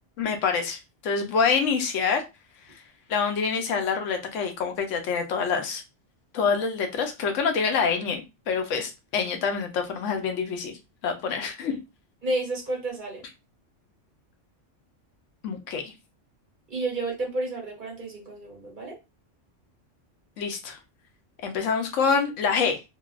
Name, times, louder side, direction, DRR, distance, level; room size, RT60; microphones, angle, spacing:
voice 1, 0.2-2.2 3.1-5.8 6.3-10.8 11.0-11.8 15.4-15.9 20.4-20.8 21.4-22.8, left 5 dB, 90° left, 5 dB, 1.0 m, -26 dB
voice 2, 12.2-13.3 16.7-19.0, right 2 dB, 45° right, -1 dB, 1.1 m, -31 dB
3.1 x 2.3 x 2.4 m, 0.26 s
omnidirectional pair, 1.3 m